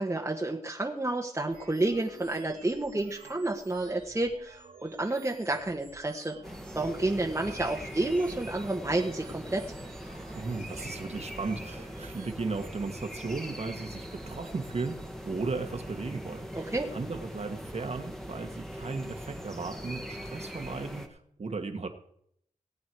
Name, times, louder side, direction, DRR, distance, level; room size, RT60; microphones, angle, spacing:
voice 1, 0.0-6.3 6.7-9.6 16.5-16.9, right 2 dB, 20° right, -1 dB, 1.5 m, -30 dB
sound 1, 1.5-12.3, right 5 dB, 85° right, 2.4 m, -53 dB
sound 2, 6.4-21.1, equal, 5° left, 1.8 m, -41 dB
voice 2, 10.3-21.9, right 4 dB, 50° right, 6 dB, 1.8 m, -36 dB
19.0 x 8.6 x 4.7 m, 0.70 s
cardioid pair, 65°, 14 cm